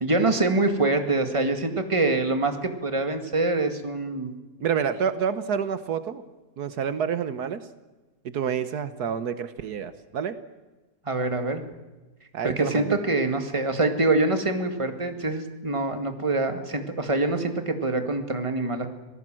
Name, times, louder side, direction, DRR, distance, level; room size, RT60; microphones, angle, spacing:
voice 1, 0.0-4.3 11.1-11.6 12.4-18.9, right 2 dB, 20° right, 6 dB, 2.0 m, -25 dB
voice 2, 4.6-6.2 6.6-7.7 8.2-10.4 12.3-13.0, right 7 dB, 75° right, 12 dB, 1.5 m, -28 dB
26.0 x 18.0 x 7.6 m, 1.2 s
omnidirectional pair, 1.7 m